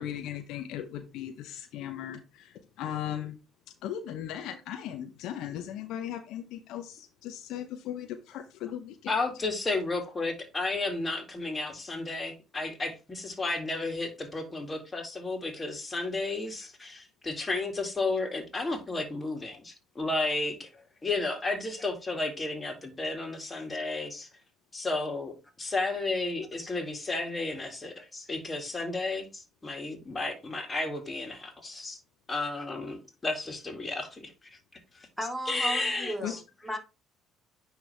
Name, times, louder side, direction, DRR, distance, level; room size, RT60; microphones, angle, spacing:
voice 1, 0.0-3.3 3.8-9.1 36.2-36.3, left 10 dB, 70° left, 0.7 m, -37 dB
voice 2, 9.1-20.7 21.0-24.3 24.7-25.3 25.6-32.0 32.3-34.3 35.5-36.4, left 2 dB, 25° left, 2.2 m, -32 dB
voice 3, 35.2-36.8, equal, ahead, 2.1 m, -35 dB
9.7 x 3.4 x 3.3 m
hypercardioid pair, 60°, 0 cm